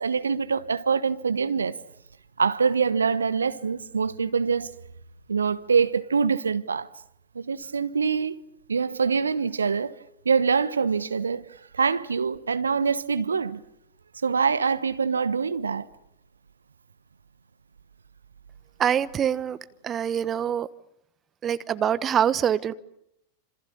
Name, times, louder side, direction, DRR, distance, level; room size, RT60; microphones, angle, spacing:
voice 1, 0.0-1.8 2.4-4.7 5.3-6.9 7.3-8.4 8.7-10.0 10.2-11.5 11.7-13.6 14.2-15.9, right 5 dB, 75° right, 1.2 m, -24 dB
voice 2, 18.8-19.6 19.8-20.7 21.4-22.7, right 9 dB, 25° right, 1.1 m, -24 dB
29.5 x 27.0 x 7.0 m
figure-of-eight pair, 90°, 0 cm